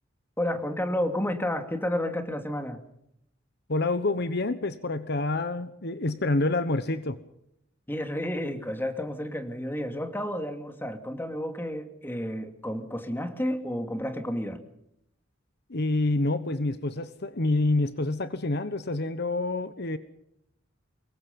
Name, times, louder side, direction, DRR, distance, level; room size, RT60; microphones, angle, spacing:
voice 1, 0.4-2.8 7.9-14.6, left 1 dB, 10° left, 6 dB, 2.6 m, -31 dB
voice 2, 3.7-7.2 15.7-20.0, left 2 dB, 55° left, 11 dB, 1.1 m, -27 dB
25.0 x 22.0 x 5.4 m, 0.77 s
head